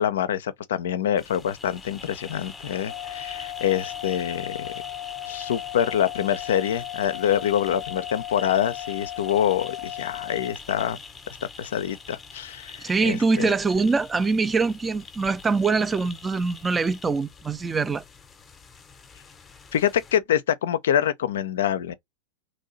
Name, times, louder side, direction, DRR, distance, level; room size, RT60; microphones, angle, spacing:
voice 1, 0.0-4.7 5.3-11.0 11.6-13.5 19.7-21.9, left 10 dB, 60° left, 0.4 m, -25 dB
sound 1, 1.2-20.2, left 4 dB, 20° left, 0.7 m, -43 dB
sound 2, 2.9-10.5, left 14 dB, 85° right, 1.0 m, -36 dB
voice 2, 12.8-18.0, right 4 dB, 15° right, 0.4 m, -23 dB
3.0 x 2.7 x 4.0 m
figure-of-eight pair, 90°, 0 cm